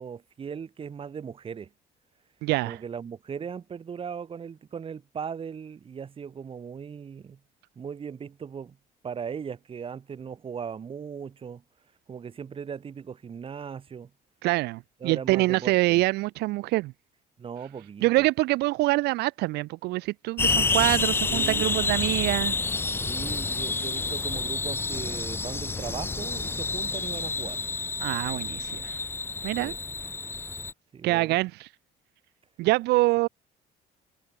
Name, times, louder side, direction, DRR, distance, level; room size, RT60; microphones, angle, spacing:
voice 1, 0.0-1.7 2.6-7.4 7.8-8.8 9.0-11.6 12.1-14.1 15.0-16.0 17.4-18.1 21.3-21.7 23.0-27.6 29.6-29.8 30.9-31.4, right 7 dB, 35° right, 1.1 m, -38 dB
voice 2, 2.4-2.8 14.4-16.9 18.0-22.5 28.0-29.0 29.4-29.7 31.0-31.7 32.6-33.3, right 20 dB, 80° right, 0.4 m, -25 dB
sound 1, 20.4-30.7, left 4 dB, 15° left, 0.4 m, -29 dB
cardioid pair, 110°, 17 cm